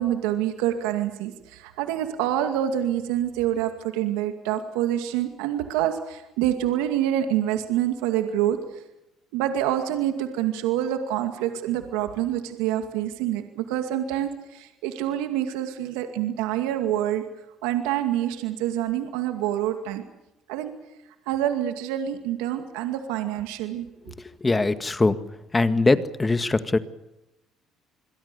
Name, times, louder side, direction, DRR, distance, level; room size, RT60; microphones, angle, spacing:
voice 1, 0.0-8.6 9.3-17.2 17.6-20.0 20.5-20.7 21.3-23.9, right 11 dB, 85° right, 7 dB, 2.3 m, -26 dB
voice 2, 24.1-25.2 25.5-26.8, left 3 dB, 20° left, 11 dB, 1.9 m, -22 dB
28.0 x 22.0 x 7.0 m, 0.92 s
supercardioid pair, 75°, 0 cm